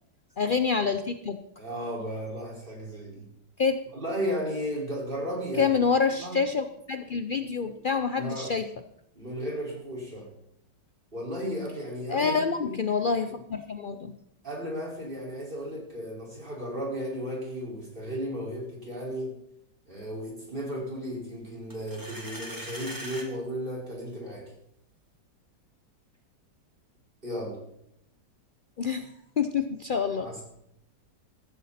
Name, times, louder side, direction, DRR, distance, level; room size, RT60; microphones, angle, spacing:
voice 1, 0.4-1.4 3.6-3.8 5.6-8.6 12.1-14.2 28.8-29.1 29.4-30.3, left 5 dB, 75° left, 8 dB, 0.4 m, -27 dB
voice 2, 1.6-3.3 3.9-5.8 6.2-6.4 8.2-8.5 9.2-10.3 11.1-12.9 14.4-19.3 19.9-24.5 27.2-27.6 30.2-30.4, equal, 30° right, -3 dB, 5.3 m, -34 dB
Coin in Tin, 21.7-23.3, right 1 dB, 10° right, 2.1 m, -40 dB
15.5 x 14.0 x 4.3 m, 0.77 s
omnidirectional pair, 1.9 m